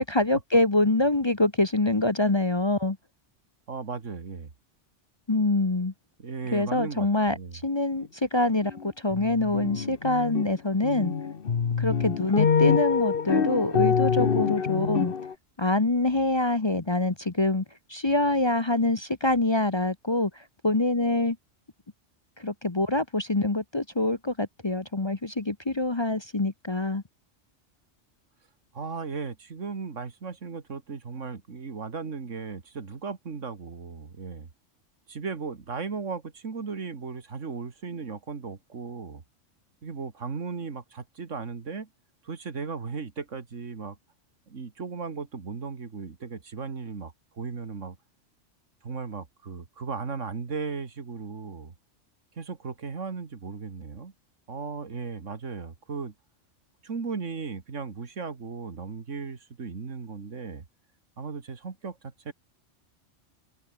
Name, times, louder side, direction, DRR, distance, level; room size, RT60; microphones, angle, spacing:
voice 1, 0.0-3.0 5.3-5.9 6.5-7.4 7.6-11.1 11.8-15.1 15.6-17.6 17.9-21.4 22.4-27.0, left 2 dB, 25° left, 1.0 m, -25 dB
voice 2, 3.7-4.5 6.2-7.6 28.7-34.5 35.1-39.2 39.8-41.9 42.2-44.0 44.5-48.0 48.8-51.7 52.4-54.1 54.5-56.1 56.8-60.6 61.2-62.3, right 5 dB, 80° right, 2.3 m, -36 dB
sound 1, 8.6-8.9 9.1-10.5 10.8-15.3, left 6 dB, 50° left, 1.3 m, -25 dB
open air
omnidirectional pair, 1.3 m